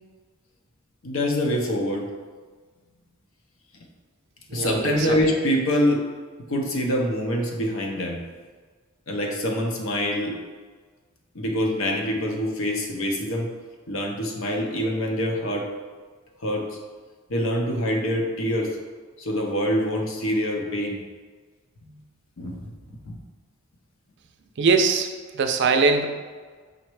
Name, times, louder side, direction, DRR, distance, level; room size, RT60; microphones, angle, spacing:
voice 1, 1.0-2.1 4.5-6.0 6.5-8.2 9.1-10.4 11.3-13.5 13.9-15.7 16.4-16.6 17.3-18.7 19.2-21.0 21.8-22.0 22.4-23.1, equal, 65° left, 1 dB, 0.7 m, -25 dB
voice 2, 4.5-5.2 24.6-25.1 25.3-26.1, right 4 dB, 55° right, 5 dB, 0.4 m, -21 dB
5.2 x 2.2 x 4.6 m, 1.5 s
head